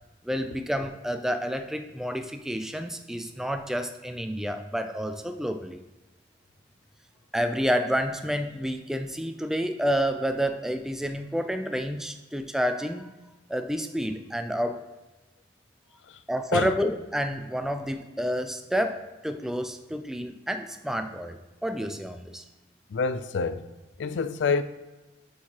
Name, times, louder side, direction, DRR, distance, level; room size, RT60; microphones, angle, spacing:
voice 1, 0.2-5.8 7.3-13.1 13.5-14.8 16.3-21.4 21.6-22.4, equal, 5° right, 0.3 m, -29 dB
voice 2, 22.9-23.7 24.0-24.6, left 4 dB, 85° left, 0.4 m, -27 dB
8.1 x 4.6 x 2.9 m
head